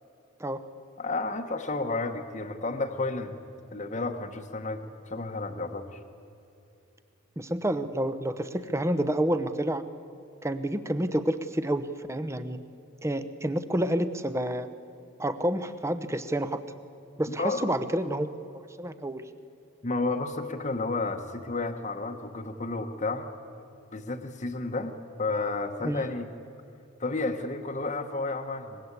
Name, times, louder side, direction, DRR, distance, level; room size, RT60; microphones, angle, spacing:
voice 1, 1.0-3.4 3.7-4.8 5.1-6.0 17.3-17.6 19.8-23.3 23.9-26.3 27.0-28.8, left 3 dB, 35° left, 4 dB, 1.1 m, -31 dB
voice 2, 7.4-9.8 10.4-11.8 12.1-12.6 13.0-14.7 15.2-16.6 17.2-18.3 18.8-19.2 25.8-26.0, right 1 dB, 15° right, 12 dB, 0.8 m, -29 dB
24.0 x 21.0 x 8.2 m, 2.8 s
head